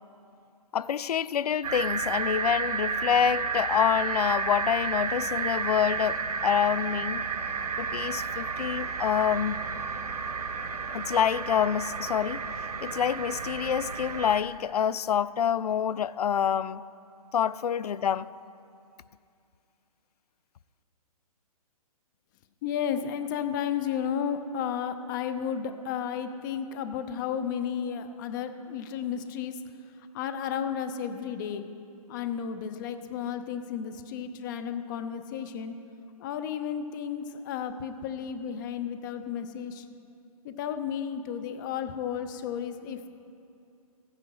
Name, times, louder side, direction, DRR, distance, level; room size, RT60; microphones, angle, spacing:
voice 1, 0.7-7.3 7.8-9.6 10.9-12.4 12.8-16.8 17.3-18.3, left 8 dB, 85° left, 0.4 m, -27 dB
sound 1, 1.6-14.4, right 5 dB, 90° right, 0.8 m, -32 dB
voice 2, 22.6-29.6 30.0-31.6 32.1-35.7 36.2-39.9 40.4-43.1, left 8 dB, 30° left, 0.6 m, -33 dB
14.5 x 9.8 x 4.7 m
hypercardioid pair, 150°, 19 cm